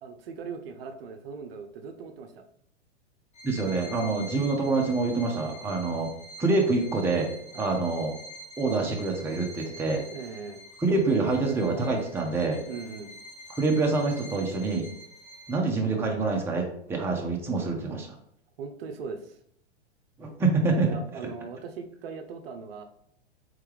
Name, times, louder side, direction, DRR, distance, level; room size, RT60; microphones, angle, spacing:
voice 1, 0.0-2.4 7.5-7.7 10.1-10.6 12.6-13.1 18.6-19.4 20.8-22.8, right 5 dB, 55° right, 6 dB, 0.6 m, -39 dB
Bowed string instrument, 3.3-15.8, left 1 dB, 20° left, 1.0 m, -46 dB
voice 2, 3.4-6.1 6.4-8.1 8.6-10.0 10.8-12.6 13.6-14.9 15.5-18.1 20.2-20.9 21.2-21.3, right 3 dB, 5° right, 0 dB, 0.6 m, -26 dB
3.6 x 3.3 x 3.3 m, 0.68 s
hypercardioid pair, 105°, 35 cm